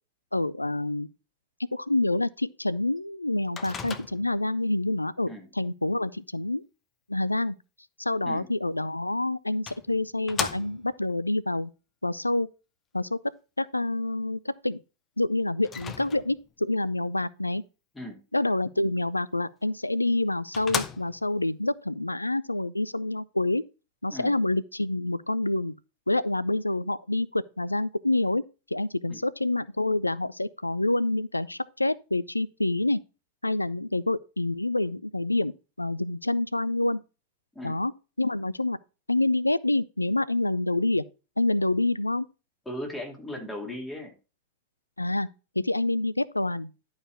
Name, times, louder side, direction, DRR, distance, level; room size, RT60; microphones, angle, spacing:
voice 1, 0.3-1.1 1.7-6.6 7.1-7.6 8.0-11.7 12.0-12.5 12.9-13.2 13.6-14.8 15.2-17.6 18.3-23.6 24.0-25.7 26.1-28.4 28.7-33.0 33.4-37.0 37.6-37.9 38.2-38.8 39.1-41.0 41.4-42.3 45.0-45.3 45.6-46.7, left 2 dB, 85° left, 0.3 m, -27 dB
Microwave oven, 3.6-4.5 8.8-8.9 9.7-11.0 15.6-16.5 19.7-19.8 20.2-20.3 20.5-21.4, left 6 dB, 25° left, 0.8 m, -35 dB
voice 2, 42.7-44.1, left 1 dB, 10° left, 2.6 m, -37 dB
11.0 x 4.8 x 4.5 m
figure-of-eight pair, 90°, 0 cm